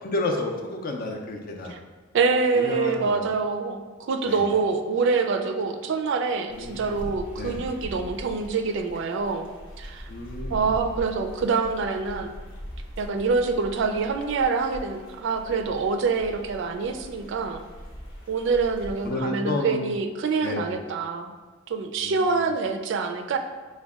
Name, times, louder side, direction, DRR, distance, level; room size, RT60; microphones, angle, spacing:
voice 1, 0.0-1.7 2.5-3.2 4.2-4.4 6.5-7.0 7.3-7.6 10.1-10.8 19.0-19.9 20.4-20.7 22.0-22.4, left 2 dB, 45° left, 2 dB, 0.5 m, -31 dB
voice 2, 2.1-9.5 9.8-10.1 10.5-12.4 13.0-17.6 18.3-21.3 21.7-23.4, right 4 dB, 65° right, 6 dB, 0.4 m, -26 dB
sound 1, 6.5-19.1, equal, 65° left, 0.8 m, -41 dB
5.0 x 2.2 x 3.5 m, 1.3 s
head